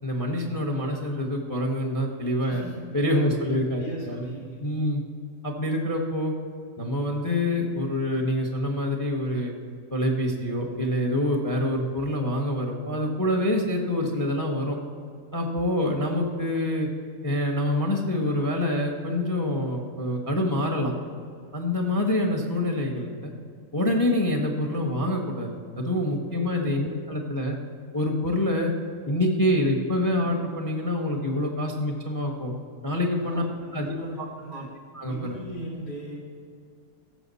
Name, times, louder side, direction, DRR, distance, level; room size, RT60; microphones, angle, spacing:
voice 1, 0.0-2.6 2.9-4.3 4.6-5.0 5.4-6.3 6.8-9.5 9.9-14.8 15.3-16.9 17.2-20.9 21.5-23.3 23.7-27.6 27.9-28.7 29.1-32.5 32.8-33.4 33.7-34.3 34.5-34.6 34.9-35.3, left 1 dB, 15° left, 2 dB, 0.8 m, -26 dB
voice 2, 2.4-2.7 3.1-4.6 26.3-26.5 33.1-34.7 35.1-36.2, equal, 85° left, -6 dB, 3.8 m, -39 dB
15.5 x 6.8 x 4.1 m, 2.3 s
omnidirectional pair, 1.7 m